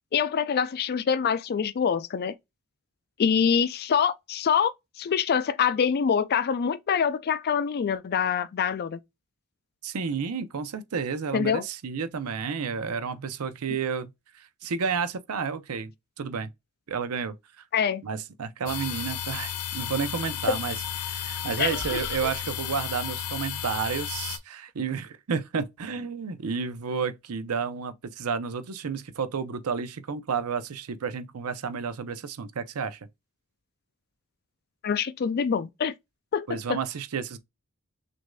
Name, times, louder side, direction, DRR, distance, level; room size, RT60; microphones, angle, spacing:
voice 1, 0.1-2.3 3.2-4.7 5.0-9.0 11.3-11.6 17.7-18.0 20.5-20.6 21.6-22.0 34.8-35.9 36.3-36.8, left 7 dB, 45° left, 0.3 m, -25 dB
voice 2, 9.8-14.1 14.4-15.9 16.2-16.5 16.9-17.4 18.0-20.8 21.0-33.0 36.5-37.4, right 6 dB, 80° right, 0.6 m, -31 dB
sound 1, 18.7-24.4, left 10 dB, 90° left, 0.6 m, -33 dB
6.2 x 2.5 x 2.2 m
head